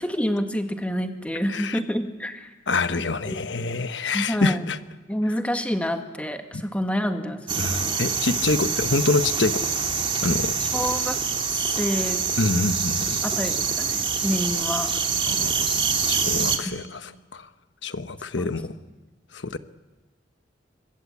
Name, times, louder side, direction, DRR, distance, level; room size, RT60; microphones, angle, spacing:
voice 1, 0.0-2.5 3.3-3.4 4.0-4.6 5.1-7.9 10.7-11.2 11.8-12.2 13.2-14.9 16.6-16.8 18.4-18.6, equal, 5° left, 6 dB, 1.7 m, -28 dB
voice 2, 1.5-1.8 2.7-4.8 7.6-9.6 10.2-10.5 12.4-13.2 15.3-15.5 16.1-17.5 17.8-18.7 19.3-19.6, left 3 dB, 75° left, 11 dB, 1.1 m, -26 dB
sound 1, 7.5-16.6, right 5 dB, 30° right, 2.2 m, -25 dB
23.5 x 21.5 x 8.5 m, 1.2 s
head